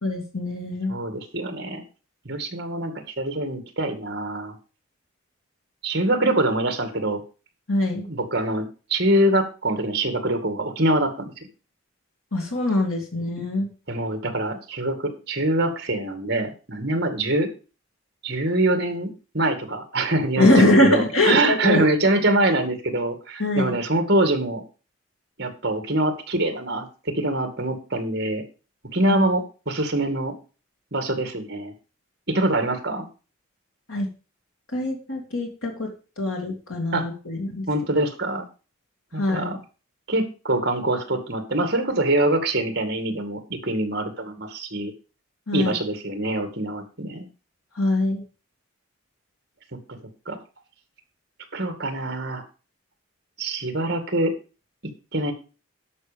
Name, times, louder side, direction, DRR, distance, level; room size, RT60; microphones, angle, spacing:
voice 1, 0.0-0.9 7.7-8.0 12.3-13.7 20.4-21.8 23.4-23.8 29.1-29.2 33.9-34.1 34.7-35.9 36.2-37.7 39.2-39.6 45.5-45.7 47.8-48.2, left 1 dB, 90° left, 1 dB, 2.5 m, -22 dB
voice 2, 0.9-1.8 2.3-4.6 5.8-7.2 8.1-11.3 13.9-17.5 18.2-19.1 19.3-24.6 25.4-28.4 28.9-30.3 30.9-31.7 32.3-33.0 36.9-37.0 37.7-38.4 39.1-39.6 40.1-44.9 45.5-47.3 50.3-50.4 51.5-52.4 53.4-54.3 55.1-55.3, right 1 dB, 50° right, 8 dB, 2.2 m, -24 dB
12.5 x 5.5 x 5.2 m, 0.34 s
head